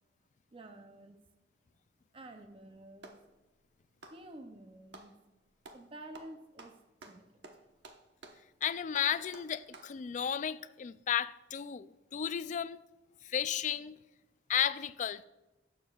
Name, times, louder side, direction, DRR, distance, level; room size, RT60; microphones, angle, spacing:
voice 1, 0.5-1.3 2.1-3.2 4.1-5.2 5.7-6.8 7.1-7.4, right 1 dB, 30° right, 0.5 m, -50 dB
Clapping, 2.4-3.3 3.9-5.2 5.6-5.9 6.1-10.0, right 2 dB, 75° right, 1.0 m, -53 dB
voice 2, 8.6-12.8 13.2-13.9 14.5-15.3, left 9 dB, 40° left, 0.3 m, -33 dB
17.5 x 7.2 x 2.3 m
head